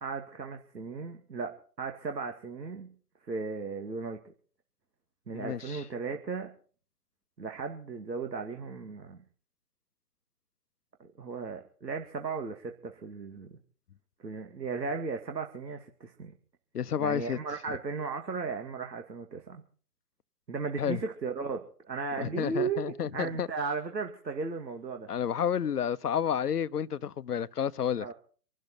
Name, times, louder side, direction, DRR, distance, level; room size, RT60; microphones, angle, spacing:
voice 1, 0.0-2.9 3.3-4.3 5.3-6.5 7.4-9.2 11.0-13.6 14.2-16.3 17.0-19.6 20.5-25.1 28.0-28.1, right 4 dB, 85° right, 2.4 m, -36 dB
voice 2, 5.3-5.8 16.7-17.4 20.8-21.0 22.1-23.5 25.1-28.1, left 8 dB, 70° left, 1.0 m, -30 dB
26.0 x 12.0 x 4.3 m
figure-of-eight pair, 140°, 49 cm